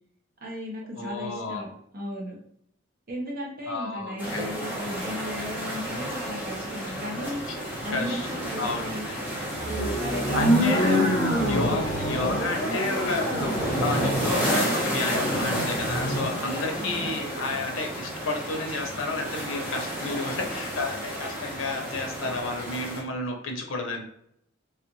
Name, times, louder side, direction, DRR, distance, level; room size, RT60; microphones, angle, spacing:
voice 1, 0.4-2.4 3.1-7.4 7.8-9.1 9.7-11.2 11.6-11.8 16.8-17.1, left 1 dB, 50° right, -1 dB, 0.9 m, -36 dB
voice 2, 0.9-1.7 3.7-4.6 7.1-7.3 7.9-8.3 8.6-9.2 10.3-11.1 11.5-24.0, left 3 dB, 80° left, 3 dB, 0.7 m, -31 dB
sound 1, 4.2-23.0, equal, 10° right, 0.9 m, -32 dB
sound 2, 9.6-16.4, equal, 20° left, 1.0 m, -26 dB
3.2 x 2.4 x 3.0 m, 0.73 s
head